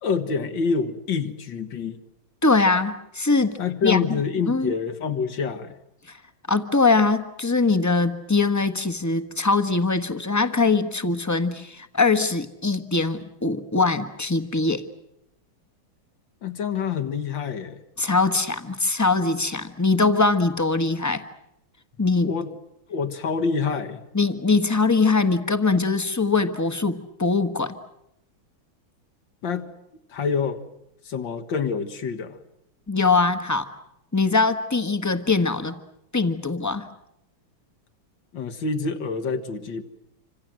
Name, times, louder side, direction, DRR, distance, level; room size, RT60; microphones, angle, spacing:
voice 1, 0.0-2.0 3.6-5.8 16.4-17.8 22.2-22.5 22.9-24.0 29.4-29.7 30.1-30.6 31.0-32.4 38.3-39.8, left 5 dB, 65° left, 7 dB, 2.3 m, -27 dB
voice 2, 2.4-3.6 3.8-4.2 4.5-4.7 6.1-6.2 6.5-14.8 18.0-21.2 22.0-22.3 24.1-27.7 32.9-33.7 34.1-35.7 36.1-36.9, left 3 dB, 10° left, 10 dB, 1.0 m, -22 dB
27.0 x 26.0 x 7.7 m, 0.81 s
omnidirectional pair, 2.2 m